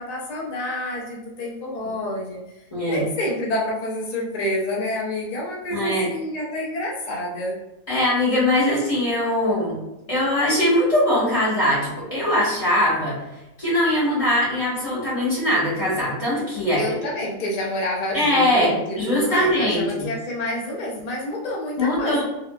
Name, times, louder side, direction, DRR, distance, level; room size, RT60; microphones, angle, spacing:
voice 1, 0.0-2.4 2.9-7.5 16.7-22.2, left 1 dB, 80° left, -3 dB, 0.3 m, -28 dB
voice 2, 2.7-3.0 5.7-6.1 7.9-9.8 10.1-13.2 13.6-17.0 18.1-19.9 21.8-22.2, left 1 dB, 25° left, -9 dB, 1.5 m, -21 dB
3.4 x 2.7 x 2.2 m, 0.95 s
omnidirectional pair, 1.5 m